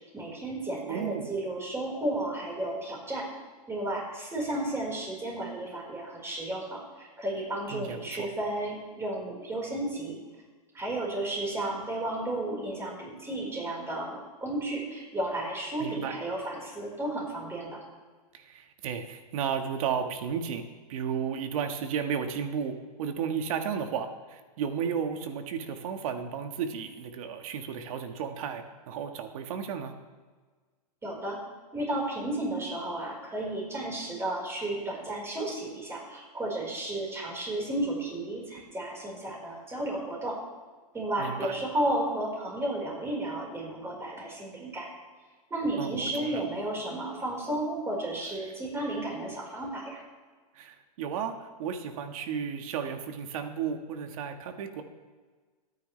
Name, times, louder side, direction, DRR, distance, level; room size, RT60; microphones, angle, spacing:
voice 1, 0.1-3.3 3.7-10.1 10.7-17.8 31.0-31.4 31.7-40.4 40.9-44.9 45.5-50.0, right 1 dB, 10° right, -2 dB, 4.5 m, -33 dB
voice 2, 0.9-1.3 7.7-8.3 15.8-16.1 18.3-20.6 20.9-29.9 41.2-41.5 45.8-46.4 50.5-54.8, right 7 dB, 55° right, 7 dB, 1.6 m, -33 dB
24.0 x 9.5 x 3.3 m, 1.4 s
hypercardioid pair, 130°, 21 cm